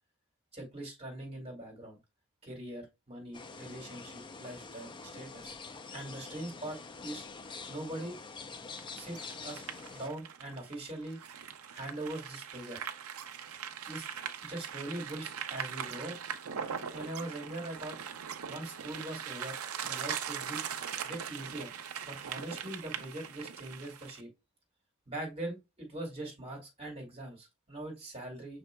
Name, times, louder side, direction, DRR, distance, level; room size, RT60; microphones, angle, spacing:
voice 1, 0.5-2.0 2.4-5.6 5.9-7.2 7.7-8.2 8.9-9.2 9.4-9.6 9.9-11.2 11.7-12.8 13.9-14.1 14.4-16.2 16.9-18.0 18.5-19.6 19.8-20.6 21.0-21.7 22.1-24.3 25.1-28.6, right 1 dB, 30° right, 2.3 m, -42 dB
sound 1, 3.3-10.1, left 4 dB, 20° left, 0.5 m, -46 dB
sound 2, 8.8-24.2, right 8 dB, 75° right, 0.6 m, -41 dB
5.7 x 4.2 x 2.2 m
head